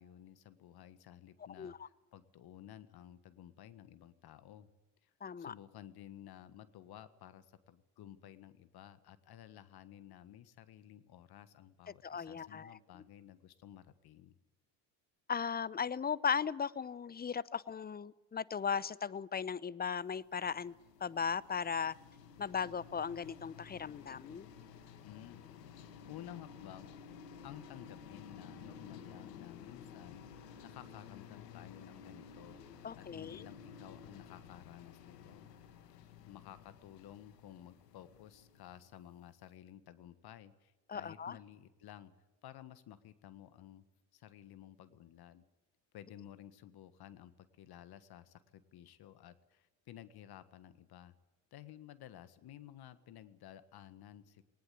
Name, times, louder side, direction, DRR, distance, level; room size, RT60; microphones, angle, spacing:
voice 1, 0.0-4.7 5.0-14.3 25.0-25.4 26.1-26.9 27.4-35.5 35.9-36.0 36.3-42.1 42.4-43.8 44.1-45.4 45.9-51.1 51.5-54.4, left 11 dB, 50° left, 13 dB, 1.6 m, -54 dB
voice 2, 1.6-1.9 5.2-5.5 12.0-12.8 15.3-20.7 21.0-21.9 22.4-24.5 32.8-33.5 40.9-41.4, left 6 dB, 20° left, 21 dB, 0.7 m, -37 dB
sound 1, 20.2-39.2, left 7 dB, 80° left, 2.0 m, -54 dB
19.5 x 19.5 x 8.5 m, 1.1 s
hypercardioid pair, 60°, 48 cm